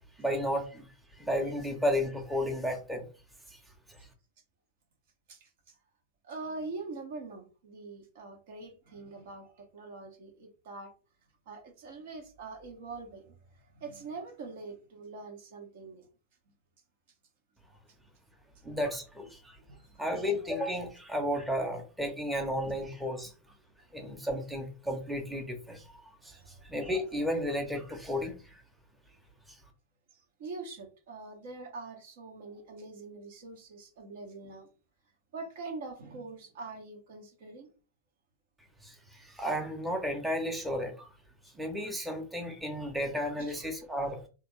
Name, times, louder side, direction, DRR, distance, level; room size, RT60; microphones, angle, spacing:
voice 1, 0.2-0.9 1.2-3.0 3.5-3.6 3.9-4.0 18.6-19.6 20.0-23.3 23.9-28.6 29.5-29.6 38.8-41.1 41.5-44.3, equal, 5° right, 0.9 m, -33 dB
voice 2, 5.3-5.7 6.2-10.9 11.5-16.1 19.6-20.0 26.2-26.6 30.1-34.7 35.3-37.7 43.4-43.6, right 3 dB, 55° right, 1.0 m, -44 dB
3.4 x 2.4 x 3.2 m
figure-of-eight pair, 90°, 0 cm